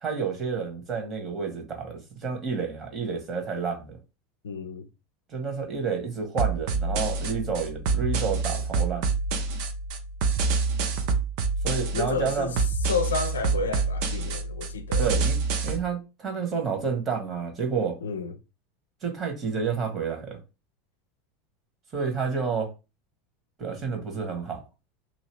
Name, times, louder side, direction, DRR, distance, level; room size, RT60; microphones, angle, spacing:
voice 1, 0.0-4.0 5.3-9.1 11.6-12.5 15.0-15.4 15.6-18.0 19.0-20.4 21.9-22.7 23.6-24.6, right 5 dB, 30° right, 1.4 m, -30 dB
voice 2, 4.4-4.9 11.9-12.6 12.9-15.1 18.0-18.3, left 5 dB, 75° left, 0.4 m, -30 dB
sound 1, 6.4-15.8, right 4 dB, 55° right, 0.6 m, -27 dB
2.8 x 2.7 x 3.2 m
figure-of-eight pair, 80°, 0 cm